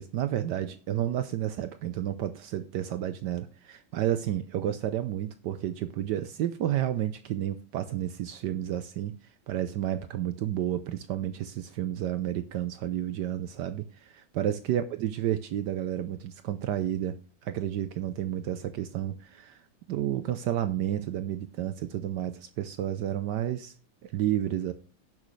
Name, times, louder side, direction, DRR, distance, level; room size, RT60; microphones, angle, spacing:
voice 1, 0.0-9.2 9.5-19.6 19.9-23.7 24.0-24.7, right 11 dB, 75° right, 1.2 m, -31 dB
17.0 x 6.3 x 3.2 m
omnidirectional pair, 2.0 m